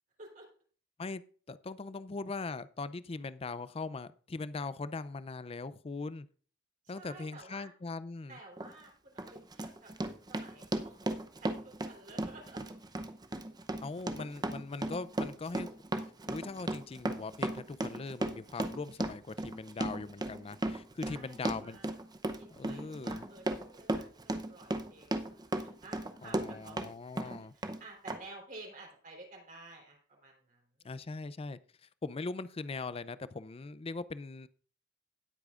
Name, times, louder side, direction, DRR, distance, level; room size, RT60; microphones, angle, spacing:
voice 1, 1.5-6.3 6.9-8.4 13.8-21.8 22.5-23.2 26.2-27.5 30.8-34.5, left 3 dB, 30° left, 16 dB, 0.4 m, -41 dB
voice 2, 6.9-7.7 8.3-12.6 21.0-22.0 22.4-30.9, right 2 dB, 45° right, -1 dB, 3.6 m, -53 dB
Run, 8.6-8.7 9.2-26.9 27.2-27.8 28.1-28.2, right 1 dB, 20° right, 0.7 m, -35 dB
17.5 x 8.4 x 2.5 m, 0.43 s
head